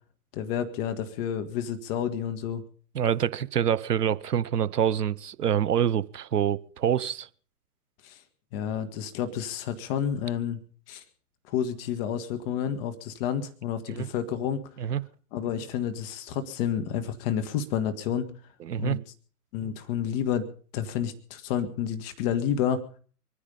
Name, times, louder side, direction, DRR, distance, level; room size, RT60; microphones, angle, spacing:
voice 1, 0.3-2.6 8.0-8.2 8.5-10.6 10.9-11.0 11.5-14.6 15.3-18.3 18.8-19.0 19.5-20.5 20.7-22.8, left 9 dB, 35° left, 1.9 m, -30 dB
voice 2, 2.9-7.3 13.9-14.1 14.8-15.0 18.6-19.0, right 9 dB, 75° right, 1.0 m, -26 dB
25.0 x 10.0 x 5.4 m
figure-of-eight pair, 120°, 48 cm